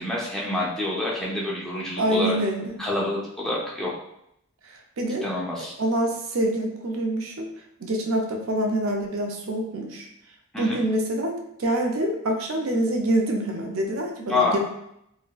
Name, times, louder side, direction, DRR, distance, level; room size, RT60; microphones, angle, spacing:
voice 1, 0.0-2.4 2.8-3.9 5.2-5.7 10.5-10.8 14.3-14.6, left 2 dB, 5° left, -6 dB, 0.5 m, -27 dB
voice 2, 2.0-2.8 5.0-5.2 5.8-7.5 7.8-10.1 10.6-11.3 11.6-14.6, right 1 dB, 85° right, 1 dB, 0.5 m, -25 dB
3.7 x 2.2 x 2.3 m, 0.77 s
head